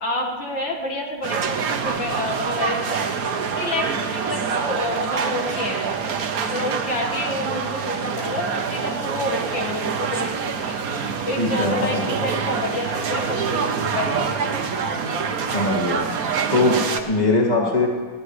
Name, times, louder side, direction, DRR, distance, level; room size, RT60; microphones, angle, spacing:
voice 1, 0.0-3.3 3.6-6.1 6.5-10.8 11.3-14.6 16.9-17.0 17.5-17.8, left 1 dB, 65° left, -1 dB, 2.4 m, -29 dB
sound 1, 1.2-17.0, right 6 dB, 55° right, 1.3 m, -26 dB
voice 2, 11.4-12.3 15.5-16.1 16.5-17.9, left 2 dB, 20° left, -2 dB, 2.1 m, -21 dB
21.0 x 17.0 x 3.3 m, 1.5 s
omnidirectional pair, 2.2 m